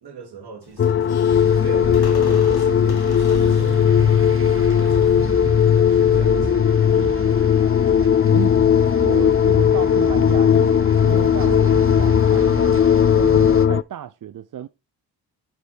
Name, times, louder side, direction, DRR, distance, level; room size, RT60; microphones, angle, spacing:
voice 1, 0.0-1.2 1.6-3.9 4.8-5.4 5.6-6.9, right 7 dB, 65° right, 2.6 m, -39 dB
Squeak, 0.6-6.4, left 5 dB, 60° left, 2.7 m, -44 dB
sound 1, 0.8-13.8, left 8 dB, 30° left, 0.4 m, -17 dB
sound 2, 1.3-13.7, right 4 dB, 30° right, 1.2 m, -32 dB
voice 2, 9.0-12.8 13.1-14.7, right 10 dB, 50° right, 0.6 m, -32 dB
9.3 x 5.1 x 4.4 m
cardioid pair, 55°, 42 cm